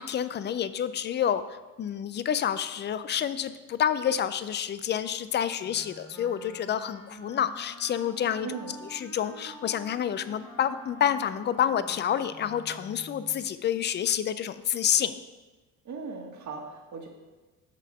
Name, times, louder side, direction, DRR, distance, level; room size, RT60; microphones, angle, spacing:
voice 1, 0.0-8.5 8.9-15.2, left 9 dB, 30° left, 14 dB, 0.3 m, -28 dB
Wind instrument woodwind instrument, 5.6-13.5, equal, 10° left, 1.2 m, -48 dB
voice 2, 8.4-8.7 15.8-17.1, right 5 dB, 40° right, 1 dB, 1.6 m, -38 dB
6.5 x 5.7 x 5.0 m, 1.2 s
supercardioid pair, 85°, 42 cm